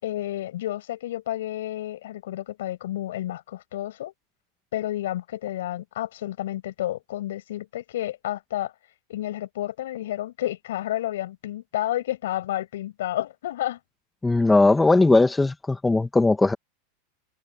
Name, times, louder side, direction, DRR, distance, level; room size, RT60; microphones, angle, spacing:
voice 1, 0.0-4.1 4.7-8.7 9.1-13.8, left 13 dB, 80° left, 8.0 m, -30 dB
voice 2, 14.2-16.5, left 2 dB, 10° left, 1.4 m, -19 dB
supercardioid pair, 145°, 0 cm